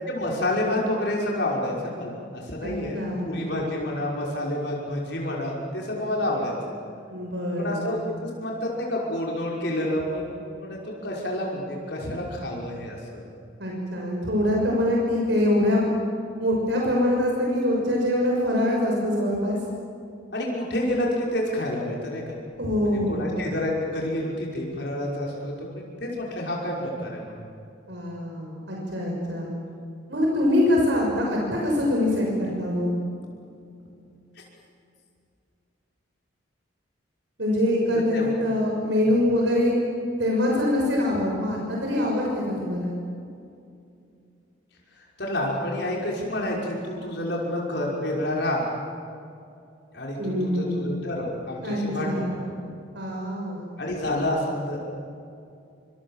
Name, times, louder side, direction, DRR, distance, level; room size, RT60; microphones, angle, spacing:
voice 1, 0.1-6.5 7.6-13.2 20.3-22.3 22.9-27.3 38.1-38.3 44.9-48.6 49.9-52.2 53.8-54.8, left 1 dB, 60° left, -3 dB, 5.6 m, -29 dB
voice 2, 2.6-3.3 7.1-7.9 13.6-15.9 16.4-19.6 22.6-23.5 27.9-29.5 30.1-32.9 37.4-39.7 40.2-42.9 50.2-50.8 51.6-52.4 52.9-53.7, left 1 dB, 65° right, -2 dB, 6.2 m, -24 dB
27.5 x 26.5 x 7.5 m, 2.5 s
head